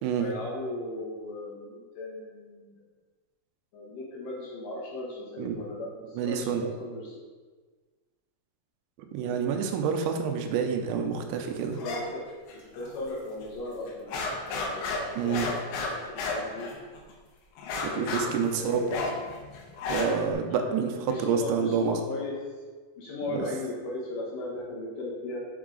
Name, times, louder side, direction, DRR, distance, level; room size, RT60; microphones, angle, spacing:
voice 1, 0.2-2.8 3.7-7.2 9.2-9.4 11.8-12.2 12.5-14.1 14.4-15.5 15.8-16.7 17.8-19.1 19.9-20.3 20.6-22.4 23.0-25.4, left 2 dB, 70° left, -5 dB, 2.2 m, -37 dB
voice 2, 6.2-6.7 9.1-11.8 15.2-15.5 17.8-18.8 19.9-22.0 23.3-23.5, right 6 dB, 85° right, 5 dB, 2.8 m, -28 dB
sound 1, 11.8-12.0 12.3-13.1 13.4-13.5 13.9-17.1 17.6-20.3, left 3 dB, 90° left, 3.3 m, -33 dB
7.0 x 4.8 x 3.8 m, 1.4 s
omnidirectional pair, 5.1 m